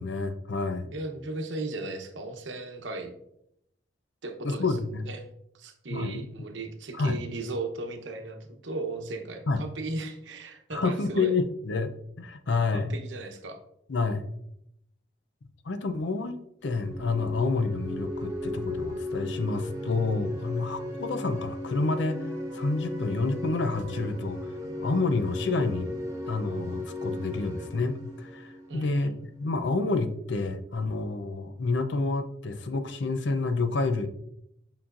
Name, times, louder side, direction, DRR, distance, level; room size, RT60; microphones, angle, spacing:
voice 1, 0.0-0.9 4.4-5.0 5.9-6.3 7.0-7.2 9.5-9.6 10.7-12.9 13.9-14.2 15.7-22.2 22.5-24.4 24.8-25.9 26.3-34.1, left 3 dB, 75° left, 9 dB, 0.6 m, -29 dB
voice 2, 0.9-3.1 4.2-4.8 5.0-5.3 5.5-11.3 12.7-13.6 28.7-29.2, right 2 dB, 85° right, 5 dB, 0.9 m, -36 dB
sound 1, 16.6-29.3, left 1 dB, 15° right, 1.1 m, -36 dB
7.0 x 5.6 x 2.5 m, 0.76 s
head